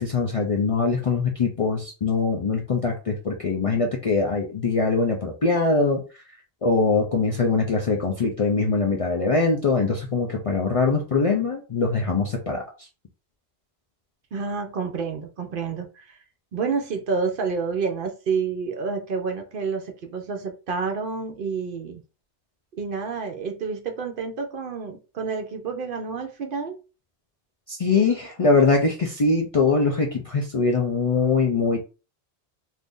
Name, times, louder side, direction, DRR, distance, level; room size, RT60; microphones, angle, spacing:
voice 1, 0.0-6.0 6.6-12.6 27.7-31.8, left 4 dB, 45° left, 0 dB, 0.4 m, -22 dB
voice 2, 14.3-16.2 16.5-22.0 22.8-26.8, right 5 dB, 60° right, 4 dB, 0.7 m, -29 dB
2.6 x 2.5 x 3.6 m, 0.32 s
omnidirectional pair, 1.1 m